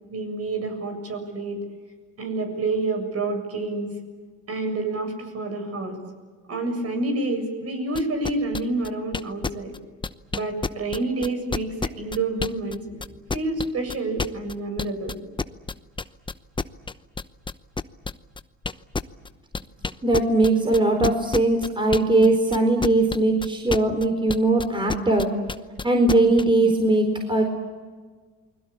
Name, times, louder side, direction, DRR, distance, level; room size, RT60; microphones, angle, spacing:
voice 1, 0.1-1.6 2.2-3.9 4.5-6.0 6.5-9.7 10.3-13.0 13.3-15.2, right 2 dB, 50° right, 5 dB, 7.5 m, -28 dB
sound 1, 8.0-12.8 13.0-22.3 22.5-26.4, left 4 dB, 15° left, 0.9 m, -29 dB
voice 2, 20.0-25.3 25.8-27.4, right 2 dB, 15° right, 3 dB, 4.3 m, -20 dB
29.0 x 21.5 x 8.6 m, 1.5 s
supercardioid pair, 90°, 32 cm